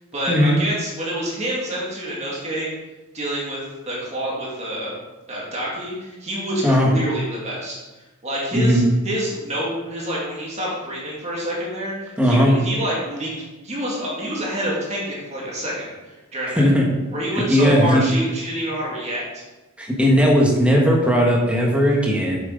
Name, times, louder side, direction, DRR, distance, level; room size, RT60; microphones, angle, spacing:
voice 1, 0.0-2.7 3.1-4.9 5.3-16.7 17.1-19.4, equal, 30° right, -4 dB, 2.0 m, -27 dB
voice 2, 8.5-8.8 12.2-12.5 16.6-16.9 17.5-18.0 19.8-22.4, equal, 5° right, -2 dB, 1.4 m, -17 dB
7.3 x 7.3 x 3.9 m, 1.1 s
head